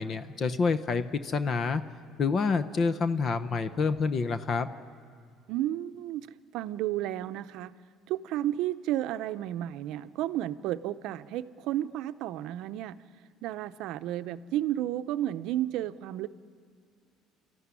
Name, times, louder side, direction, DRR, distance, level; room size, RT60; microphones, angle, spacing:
voice 1, 0.0-1.8 2.2-4.7, left 4 dB, 35° left, 11 dB, 0.8 m, -28 dB
voice 2, 5.5-6.3 6.5-7.7 8.1-13.0 13.4-16.3, right 13 dB, 70° right, 12 dB, 0.7 m, -32 dB
28.5 x 14.0 x 9.8 m, 2.2 s
cardioid pair, 130°, 0 cm